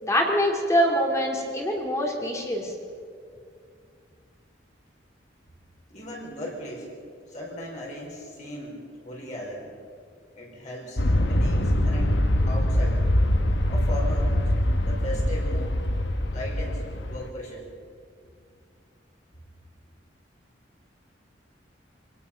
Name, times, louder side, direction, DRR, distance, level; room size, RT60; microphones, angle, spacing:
voice 1, 0.0-2.7, equal, 15° left, 0 dB, 2.8 m, -24 dB
voice 2, 5.9-6.9 7.3-9.7 10.3-13.0 13.7-14.5 14.8-15.8 16.3-17.7, equal, 40° left, -3 dB, 4.8 m, -37 dB
Aircraft, 11.0-17.3, left 1 dB, 75° left, 1.4 m, -23 dB
25.5 x 18.0 x 5.8 m, 2.2 s
head